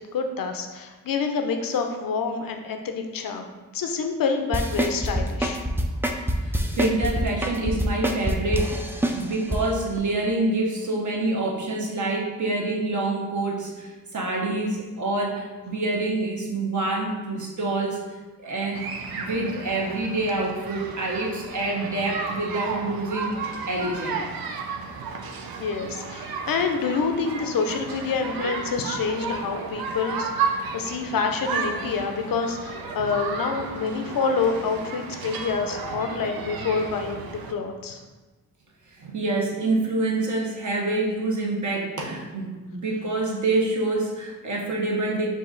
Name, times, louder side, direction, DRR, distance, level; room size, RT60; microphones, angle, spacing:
voice 1, 0.1-5.6 25.6-38.0, left 5 dB, 70° left, 5 dB, 0.6 m, -27 dB
sound 1, 4.5-9.6 10.0-10.1, equal, 5° right, 0.3 m, -25 dB
voice 2, 6.4-18.0 18.4-18.9 19.2-23.3 23.7-24.2 30.7-30.9 38.9-45.3, right 2 dB, 55° right, -1 dB, 0.9 m, -27 dB
sound 2, 18.7-37.5, right 5 dB, 80° right, 0.5 m, -33 dB
4.8 x 2.4 x 3.9 m, 1.2 s
cardioid pair, 75°, 36 cm